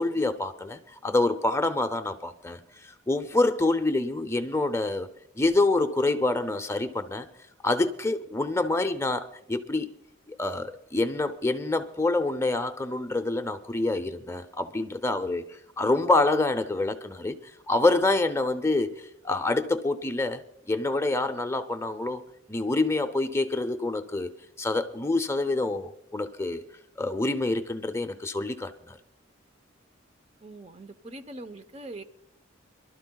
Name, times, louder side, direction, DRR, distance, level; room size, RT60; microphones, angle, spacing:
voice 1, 0.0-5.1 5.4-7.3 7.6-9.9 10.3-17.4 17.7-22.2 22.5-24.3 24.6-26.6 27.0-29.0, left 2 dB, 15° left, 0.6 m, -27 dB
voice 2, 30.4-32.0, right 2 dB, 30° right, 0.9 m, -42 dB
27.0 x 12.5 x 2.3 m
head